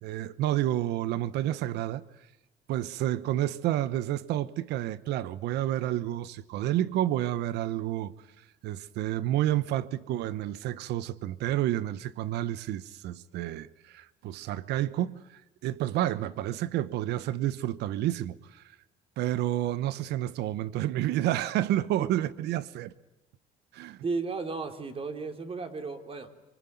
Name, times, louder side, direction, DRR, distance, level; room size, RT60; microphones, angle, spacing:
voice 1, 0.0-2.0 2.7-8.1 8.6-18.6 19.2-22.9 23.7-24.0, right 13 dB, 80° right, 1.0 m, -30 dB
voice 2, 24.0-26.3, right 4 dB, 35° right, 3.2 m, -34 dB
25.0 x 24.5 x 9.4 m
cardioid pair, 110°, 17 cm